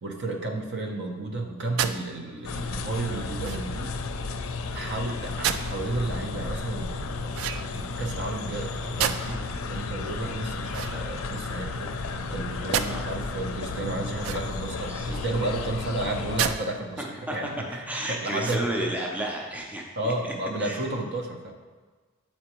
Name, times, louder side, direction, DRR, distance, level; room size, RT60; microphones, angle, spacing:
voice 1, 0.0-4.0 4.7-17.0 17.3-18.9 20.0-21.5, right 2 dB, 55° right, 2 dB, 0.7 m, -32 dB
sound 1, 1.8-2.0 3.4-3.8 5.4-5.8 7.3-7.9 9.0-9.5 10.7-11.5 12.7-12.9 14.2-14.7 16.4-16.6 17.1-17.2 18.4-18.9, right 9 dB, 80° right, 0.3 m, -30 dB
sound 2, 2.4-16.5, left 3 dB, 80° left, 0.4 m, -33 dB
voice 2, 14.9-15.2 17.0-17.4 17.9-19.9 20.2-20.3 20.6-20.8, right 1 dB, 5° right, -1 dB, 0.5 m, -32 dB
7.5 x 4.3 x 3.0 m, 1.4 s
head